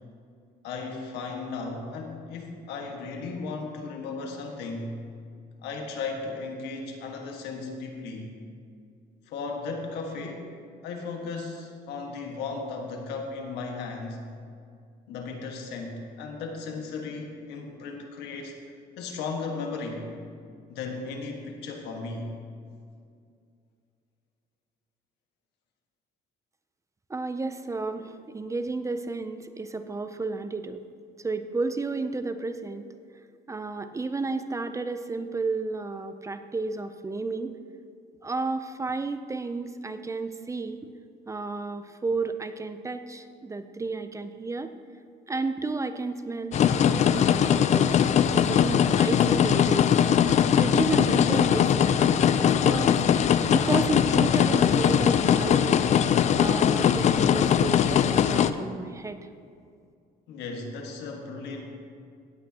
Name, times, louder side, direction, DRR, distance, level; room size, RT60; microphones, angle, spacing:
voice 1, 0.6-5.0 5.6-8.4 9.3-10.5 10.8-14.2 15.1-18.6 19.0-20.1 20.7-22.3 60.3-61.6, left 4 dB, 85° left, 2 dB, 1.6 m, -35 dB
voice 2, 27.1-30.8 31.2-32.9 33.5-37.6 38.2-40.8 41.3-44.7 45.3-48.0 48.3-50.0 50.6-51.9 52.4-52.9 53.5-55.8 56.4-59.2, right 3 dB, 20° right, 9 dB, 0.5 m, -32 dB
sound 1, 46.5-58.5, left 8 dB, 45° left, 0.4 m, -21 dB
17.0 x 8.3 x 2.9 m, 2.3 s
cardioid pair, 110°, 17 cm